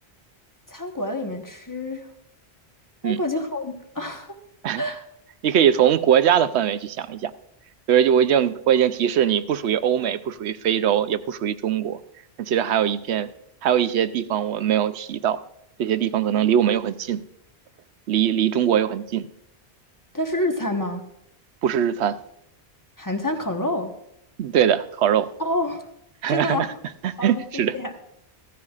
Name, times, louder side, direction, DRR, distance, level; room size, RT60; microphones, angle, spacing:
voice 1, 0.7-2.1 3.0-4.4 4.8-5.0 20.1-21.0 23.0-23.9 25.4-25.9 26.3-26.6 27.2-27.9, left 1 dB, 20° left, 4 dB, 1.1 m, -28 dB
voice 2, 5.4-7.3 7.9-12.0 12.4-13.3 13.6-15.4 15.8-17.2 18.1-19.2 21.6-22.2 24.4-25.3 26.2-26.7 27.0-27.7, right 9 dB, 85° right, 13 dB, 0.9 m, -21 dB
15.0 x 13.5 x 2.4 m, 0.77 s
omnidirectional pair, 1.1 m